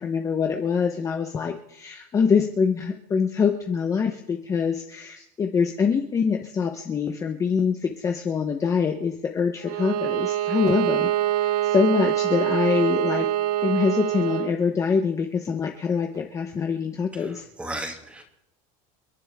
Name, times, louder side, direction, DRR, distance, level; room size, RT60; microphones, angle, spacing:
voice 1, 0.0-11.1 11.4-13.3 13.6-17.4, left 6 dB, 20° left, 3 dB, 0.9 m, -24 dB
Bowed string instrument, 9.6-14.6, right 13 dB, 65° right, 1.0 m, -25 dB
voice 2, 17.1-18.2, right 1 dB, 5° right, 2 dB, 2.5 m, -35 dB
29.5 x 11.0 x 3.6 m, 0.83 s
cardioid pair, 165°, 17 cm